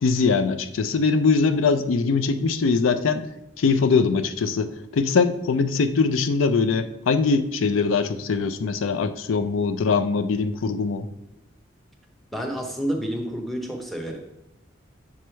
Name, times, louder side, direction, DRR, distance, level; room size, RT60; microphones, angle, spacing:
voice 1, 0.0-3.2 3.6-11.1, left 4 dB, 85° left, 10 dB, 0.4 m, -22 dB
voice 2, 12.3-14.2, equal, ahead, 1 dB, 0.7 m, -29 dB
7.0 x 3.1 x 4.5 m, 0.85 s
head